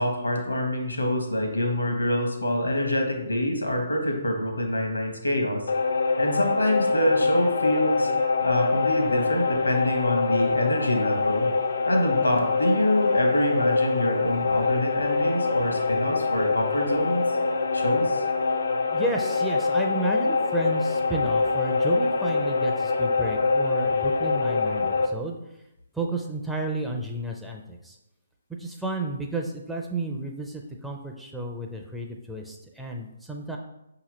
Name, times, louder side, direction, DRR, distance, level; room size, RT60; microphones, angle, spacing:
voice 1, 0.0-5.7 6.2-8.1 8.4-11.5 11.9-17.2 17.7-18.2, left 1 dB, 80° left, 3 dB, 0.9 m, -26 dB
sound 1, 5.7-25.1, left 3 dB, 65° left, 0.4 m, -24 dB
voice 2, 18.9-25.4 25.9-28.0 28.6-33.6, right 2 dB, 5° right, -1 dB, 0.4 m, -32 dB
5.7 x 2.9 x 3.0 m, 0.89 s
figure-of-eight pair, 130°, 0 cm